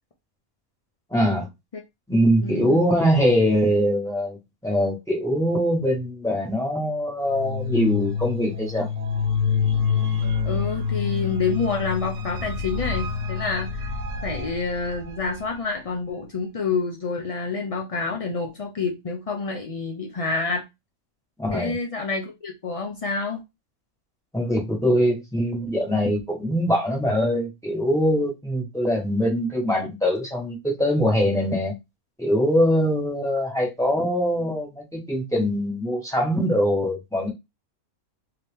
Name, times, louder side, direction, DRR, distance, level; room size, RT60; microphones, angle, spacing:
voice 1, 1.1-1.5 2.1-4.4 4.6-8.9 21.4-21.7 24.3-31.7 32.2-37.3, equal, ahead, 1.2 m, -22 dB
voice 2, 2.4-2.8 10.5-13.9 14.2-20.6 21.5-23.4, left 4 dB, 70° left, 0.3 m, -28 dB
sound 1, 7.2-15.5, left 6 dB, 75° right, 1.1 m, -27 dB
2.9 x 2.8 x 3.4 m
omnidirectional pair, 1.5 m